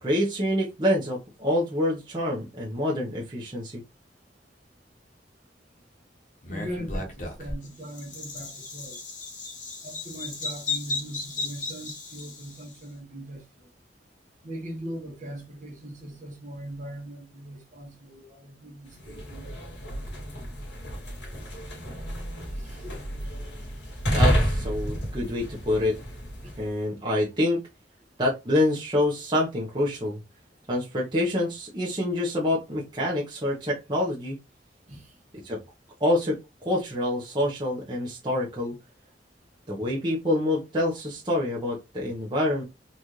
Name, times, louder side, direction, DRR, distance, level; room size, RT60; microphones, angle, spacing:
voice 1, 0.0-3.8 24.1-26.0 26.6-27.6 28.2-30.2 30.7-34.4 35.4-35.6 36.0-36.4 36.6-38.8 39.7-42.6, left 1 dB, 25° right, 0.9 m, -26 dB
Bird vocalization bird call bird song, 6.4-12.7, left 3 dB, 50° left, 1.1 m, -35 dB
voice 2, 6.5-9.0 9.8-13.4 14.4-19.9 22.6-23.0 26.4-26.6 34.9-35.1, right 1 dB, 45° right, 1.2 m, -40 dB
sound 1, 18.9-26.7, equal, 90° left, 2.0 m, -30 dB
4.0 x 2.6 x 3.1 m
head